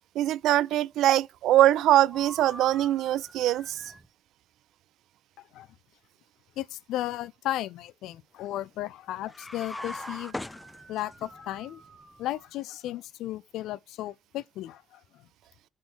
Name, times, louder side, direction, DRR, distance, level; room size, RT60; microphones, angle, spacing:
voice 1, 0.2-3.8, right 13 dB, 85° right, 0.3 m, -22 dB
sound 1, 2.1-4.1 9.7-12.5, right 2 dB, 20° right, 1.2 m, -48 dB
voice 2, 6.6-10.3 10.9-11.8 12.2-15.3, left 14 dB, 90° left, 0.4 m, -35 dB
sound 2, 9.3-11.3, left 2 dB, 15° left, 0.4 m, -38 dB
6.1 x 3.7 x 6.0 m
cardioid pair, 90°, 0 cm